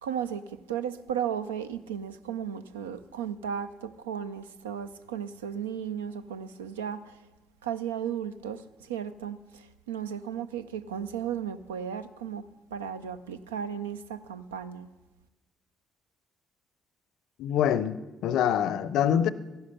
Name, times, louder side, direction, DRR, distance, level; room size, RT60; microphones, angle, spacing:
voice 1, 0.0-7.2 7.6-12.4 12.7-14.9, right 8 dB, 85° right, 0.4 m, -35 dB
voice 2, 17.4-19.3, left 9 dB, 65° left, 0.5 m, -25 dB
14.5 x 11.5 x 5.7 m
hypercardioid pair, 45°, 0 cm